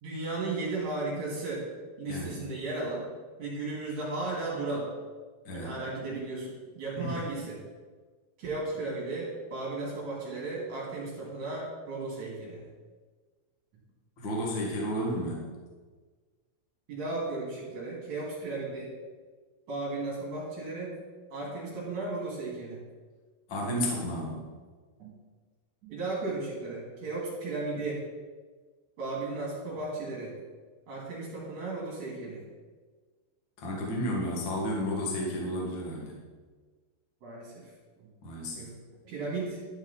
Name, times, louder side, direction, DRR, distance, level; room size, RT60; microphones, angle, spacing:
voice 1, 0.0-1.6 2.0-3.1 3.4-4.9 5.5-7.6 8.4-12.6 16.9-18.9 19.7-21.0 21.3-22.8 25.0-25.1 25.8-28.0 29.0-30.3 30.9-32.4 37.2-37.7 38.0-38.1 38.4-38.7 39.0-39.6, right 3 dB, 45° right, -5 dB, 2.9 m, -35 dB
voice 2, 2.1-2.4 5.4-5.7 6.9-7.1 14.2-15.5 23.5-24.4 33.6-36.1 38.2-38.6, equal, 65° left, -2 dB, 1.1 m, -32 dB
12.0 x 6.1 x 4.2 m, 1.4 s
omnidirectional pair, 5.6 m